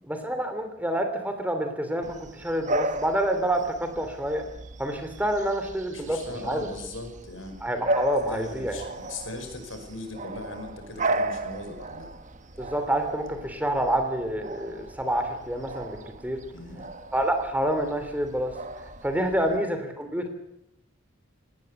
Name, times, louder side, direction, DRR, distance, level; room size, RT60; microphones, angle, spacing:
voice 1, 0.1-4.4 4.8-6.7 7.6-8.8 12.6-16.0 16.2-16.4 17.1-18.5 19.0-20.3, right 1 dB, 10° right, 7 dB, 3.0 m, -28 dB
Bark / Bird vocalization bird call bird song, 2.0-19.6, right 2 dB, 40° right, 1.2 m, -35 dB
voice 2, 5.9-7.6 8.3-12.1 16.5-16.9 19.4-19.6, left 2 dB, 85° left, 6 dB, 5.5 m, -39 dB
18.5 x 18.5 x 8.1 m, 0.84 s
head